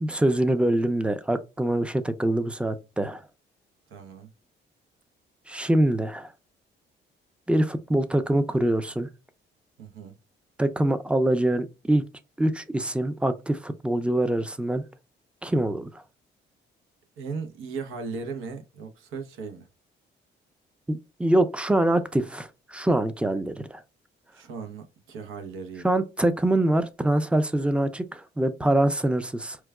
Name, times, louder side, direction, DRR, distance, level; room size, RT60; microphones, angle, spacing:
voice 1, 0.0-3.2 5.5-6.3 7.5-9.1 10.6-12.0 12.4-14.8 15.4-16.0 20.9-23.8 25.8-29.6, right 1 dB, 5° right, 0.4 m, -24 dB
voice 2, 3.9-4.3 9.8-10.2 17.2-19.7 24.3-25.9, right 5 dB, 85° right, 0.7 m, -37 dB
4.5 x 2.2 x 2.2 m
cardioid pair, 90°, 20 cm